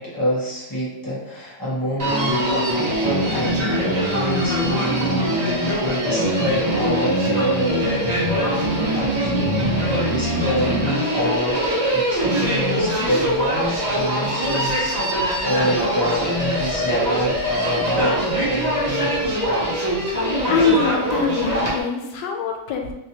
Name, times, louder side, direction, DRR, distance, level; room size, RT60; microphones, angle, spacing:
voice 1, 0.0-19.1 20.0-20.1, equal, 20° left, -8 dB, 0.5 m, -27 dB
Human voice, 2.0-21.8, equal, 50° right, 0.5 m, -22 dB
voice 2, 20.5-22.9, left 4 dB, 85° left, 3 dB, 1.2 m, -22 dB
3.2 x 2.9 x 2.8 m, 0.96 s
omnidirectional pair, 1.8 m